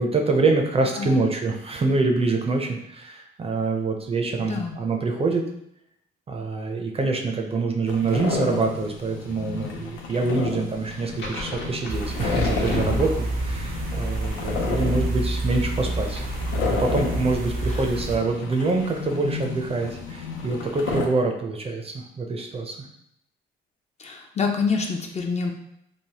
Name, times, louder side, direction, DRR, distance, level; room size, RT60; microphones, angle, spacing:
voice 1, 0.0-5.4 6.3-16.3 16.6-22.8, right 3 dB, 30° right, 3 dB, 0.4 m, -25 dB
voice 2, 1.0-1.3 4.4-4.8 17.7-17.9 24.0-25.5, left 5 dB, 35° left, 2 dB, 0.4 m, -27 dB
sound 1, 7.9-21.1, left 5 dB, 90° left, 0.5 m, -32 dB
sound 2, 10.9-13.8, left 2 dB, 65° left, 0.8 m, -31 dB
sound 3, 11.9-18.2, right 1 dB, 85° right, 0.6 m, -28 dB
3.2 x 2.0 x 2.8 m, 0.76 s
cardioid pair, 90°, 20 cm